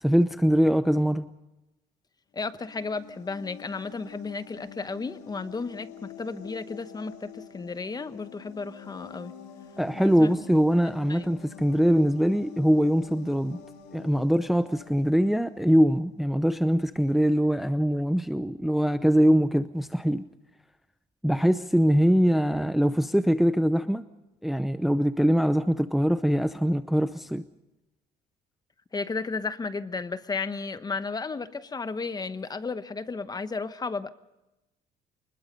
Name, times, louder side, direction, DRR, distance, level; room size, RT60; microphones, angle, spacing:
voice 1, 0.0-1.3 9.8-13.6 13.9-20.2 21.2-24.0 24.4-27.4, equal, ahead, 0.6 m, -23 dB
voice 2, 2.3-9.3 9.9-10.3 11.1-11.2 28.9-34.1, left 4 dB, 25° left, 1.0 m, -33 dB
sound 1, 2.4-15.9, left 7 dB, 80° left, 3.4 m, -47 dB
25.0 x 20.5 x 5.3 m
cardioid pair, 110°, 17 cm